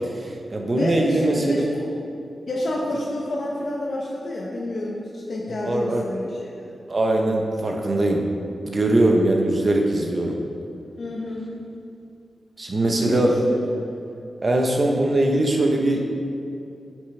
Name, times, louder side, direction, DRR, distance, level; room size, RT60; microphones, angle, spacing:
voice 1, 0.1-1.7 5.6-6.0 6.9-8.2 8.6-10.4 12.6-13.3 14.4-16.1, right 1 dB, 35° right, 2 dB, 0.8 m, -21 dB
voice 2, 0.7-1.9 2.5-6.5 11.0-11.5 13.0-13.6, left 1 dB, 60° left, -3 dB, 0.8 m, -29 dB
8.0 x 6.2 x 3.3 m, 2.6 s
wide cardioid pair, 115°, 0 cm